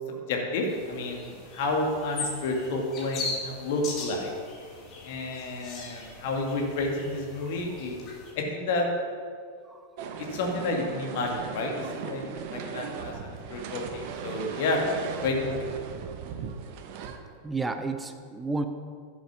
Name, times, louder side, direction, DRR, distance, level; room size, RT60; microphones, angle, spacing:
voice 1, 0.0-4.3 5.0-8.0 8.4-8.9 10.2-14.8 15.2-15.6, left 2 dB, 50° left, 1 dB, 2.1 m, -30 dB
sound 1, 0.7-8.3, left 3 dB, 30° left, 2.5 m, -40 dB
voice 2, 9.7-10.2 12.9-13.0 17.4-18.7, right 3 dB, 10° right, 7 dB, 0.7 m, -33 dB
sound 2, 10.0-17.2, right 7 dB, 45° right, 1.0 m, -38 dB
12.0 x 7.4 x 6.0 m, 2.2 s
figure-of-eight pair, 90°, 0 cm